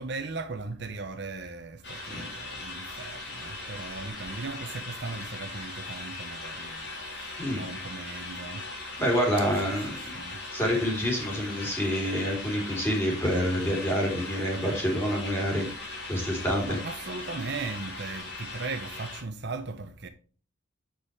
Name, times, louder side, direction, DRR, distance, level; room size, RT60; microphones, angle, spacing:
voice 1, 0.0-8.6 9.6-10.4 16.7-20.1, right 3 dB, 55° right, 0.8 m, -38 dB
sound 1, 1.8-19.2, left 2 dB, 55° left, 3.3 m, -39 dB
voice 2, 7.4-7.7 9.0-10.0 10.5-15.7 16.1-16.8, equal, 10° left, 3.1 m, -27 dB
8.0 x 6.3 x 3.3 m
head